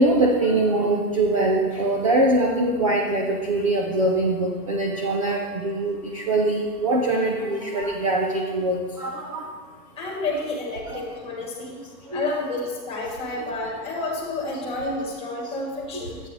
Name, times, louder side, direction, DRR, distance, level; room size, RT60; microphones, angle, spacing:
voice 1, 0.0-9.4 10.9-11.0 12.1-12.3 15.9-16.0, right 2 dB, 25° right, -1 dB, 0.4 m, -23 dB
voice 2, 10.0-11.8 12.1-16.2, left 2 dB, 15° left, -1 dB, 1.9 m, -30 dB
11.5 x 8.8 x 3.3 m, 1.5 s
hypercardioid pair, 165°, 45 cm